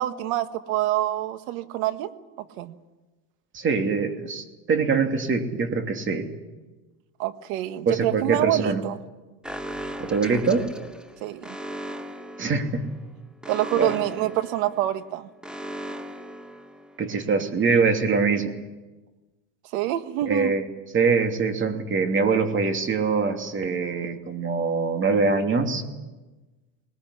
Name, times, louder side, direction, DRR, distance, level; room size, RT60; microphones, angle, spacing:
voice 1, 0.0-2.1 2.4-2.7 7.2-9.0 11.2-11.6 13.5-15.3 19.7-20.5, right 14 dB, 80° right, 11 dB, 1.6 m, -26 dB
voice 2, 3.5-6.3 7.9-8.8 10.0-10.7 12.4-12.8 13.8-13.9 17.0-18.5 20.3-20.6 20.9-25.8, right 4 dB, 30° right, 5 dB, 2.8 m, -23 dB
Alarm, 9.4-17.2, equal, ahead, 1.2 m, -38 dB
20.5 x 20.5 x 10.0 m, 1.2 s
cardioid pair, 135°, 41 cm